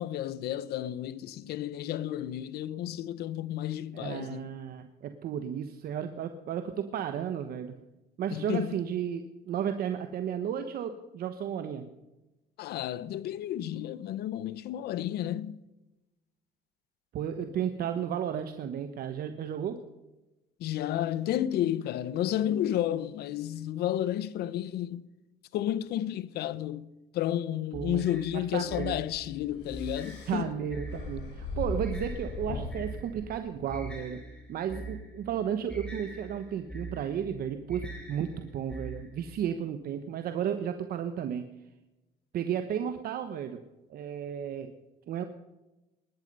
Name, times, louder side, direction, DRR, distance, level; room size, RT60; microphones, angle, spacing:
voice 1, 0.0-4.5 8.3-8.8 12.6-15.6 20.6-25.0 25.5-30.5, left 11 dB, 75° left, 0.8 m, -32 dB
voice 2, 3.9-7.7 8.2-11.9 17.1-19.8 27.7-28.0 28.3-29.0 30.3-34.2 34.5-41.5 42.3-43.6 43.9-44.7 45.1-45.2, right 8 dB, 65° right, 1.0 m, -33 dB
sound 1, 27.7-39.4, right 2 dB, 5° left, 3.8 m, -43 dB
sound 2, 28.6-33.8, left 2 dB, 90° left, 5.0 m, -39 dB
20.5 x 11.0 x 5.4 m
cardioid pair, 110°, 17 cm